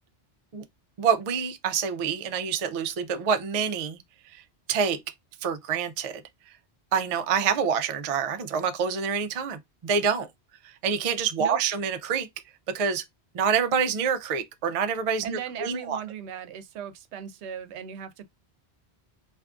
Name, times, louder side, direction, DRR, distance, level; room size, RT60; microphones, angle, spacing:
voice 1, 1.0-4.0 4.3-4.4 4.7-5.0 5.4-6.2 6.9-10.3 10.6-12.3 12.7-13.0 13.3-16.0, right 6 dB, 55° right, 0.4 m, -27 dB
voice 2, 15.2-18.3, right 8 dB, 90° right, 0.9 m, -37 dB
2.5 x 2.4 x 3.5 m
omnidirectional pair, 1.1 m